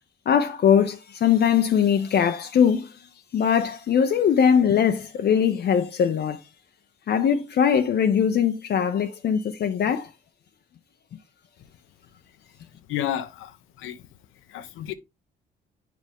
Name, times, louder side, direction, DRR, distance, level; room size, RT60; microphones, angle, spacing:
voice 1, 0.3-6.4 7.1-10.1, left 8 dB, 55° left, 0.7 m, -21 dB
voice 2, 12.9-14.1 14.5-14.9, left 11 dB, 90° left, 0.9 m, -31 dB
7.6 x 5.1 x 3.5 m
cardioid pair, 90°, 20 cm